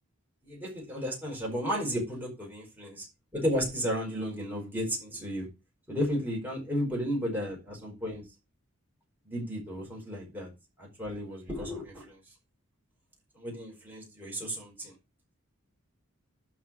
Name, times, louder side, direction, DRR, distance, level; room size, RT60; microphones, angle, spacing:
voice 1, 0.4-3.1 3.3-5.5 5.9-8.2 9.2-10.5 10.8-12.2 13.3-14.9, equal, 10° right, -3 dB, 4.8 m, -33 dB
11.5 x 4.7 x 6.1 m, 0.27 s
head